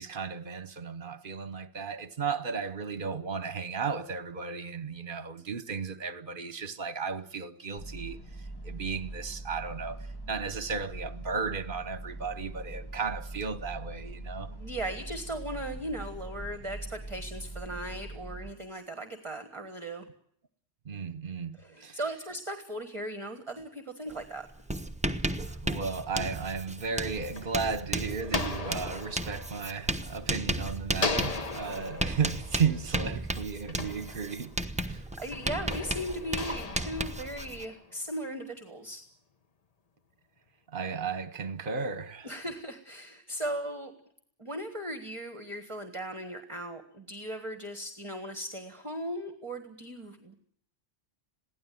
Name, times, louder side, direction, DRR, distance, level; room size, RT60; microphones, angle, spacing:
voice 1, 0.0-8.2 8.6-14.6 20.8-22.0 25.4-34.6 34.9-35.0 40.7-42.3, right 5 dB, 50° right, 1.2 m, -34 dB
sound 1, 7.8-18.5, right 2 dB, 20° left, 1.5 m, -42 dB
voice 2, 14.5-20.1 21.5-24.5 34.8-39.0 42.2-43.9 44.4-50.3, right 1 dB, 25° right, 1.6 m, -38 dB
Writing, 24.1-24.3 24.5-37.6, right 1 dB, 5° right, 1.0 m, -34 dB
sound 2, 26.8-30.5 30.9-34.7 35.3-38.0, left 3 dB, 35° left, 1.2 m, -38 dB
22.0 x 16.5 x 9.3 m
omnidirectional pair, 1.1 m